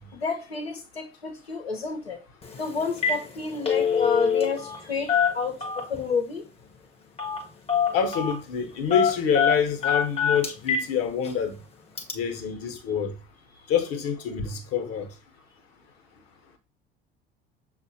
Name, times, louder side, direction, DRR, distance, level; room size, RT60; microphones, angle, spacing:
voice 1, 0.1-2.2 2.5-6.4, left 5 dB, 85° left, 1.0 m, -30 dB
Telephone, 2.4-2.6 2.9-3.2 3.5-4.8 5.1-6.0 7.2-7.4 7.7-8.4 8.9-10.9 11.3-11.4 12.0-12.1, left 7 dB, 20° left, 0.8 m, -24 dB
voice 2, 7.9-11.6 12.1-13.1 13.7-15.1, left 7 dB, 50° left, 1.0 m, -26 dB
6.1 x 2.5 x 2.7 m
figure-of-eight pair, 65°, 30 cm